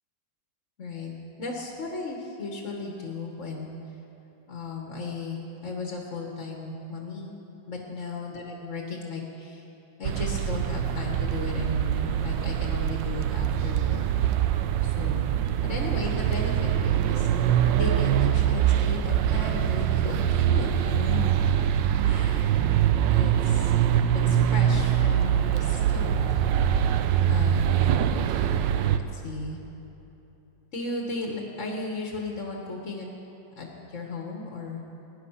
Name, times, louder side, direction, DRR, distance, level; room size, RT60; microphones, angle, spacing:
voice 1, 0.8-1.1 1.4-3.7 4.5-7.3 7.7-9.6 10.0-14.1 14.8-15.3 15.6-17.3 17.7-20.1 20.5-21.2 22.0-22.6 23.1-23.7 24.1-26.5 27.3-27.7 29.1-29.6 30.7-33.1 33.5-34.8, left 3 dB, 45° left, 0 dB, 1.6 m, -35 dB
sound 1, 10.0-29.0, right 10 dB, 75° right, 1.3 m, -24 dB
18.0 x 10.5 x 5.7 m, 3.0 s
omnidirectional pair, 2.0 m